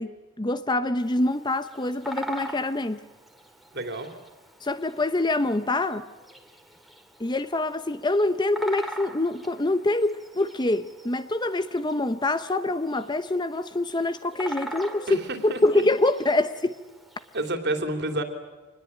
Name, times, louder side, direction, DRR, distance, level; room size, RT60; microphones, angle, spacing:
voice 1, 0.0-3.0 4.6-6.1 7.2-16.7, left 2 dB, 20° left, 0.7 m, -25 dB
Bird vocalization bird call bird song, 1.0-17.5, right 1 dB, ahead, 2.3 m, -43 dB
voice 2, 3.7-4.1 15.1-15.8 17.3-18.2, right 1 dB, 50° right, 3.3 m, -29 dB
25.5 x 21.0 x 8.8 m
head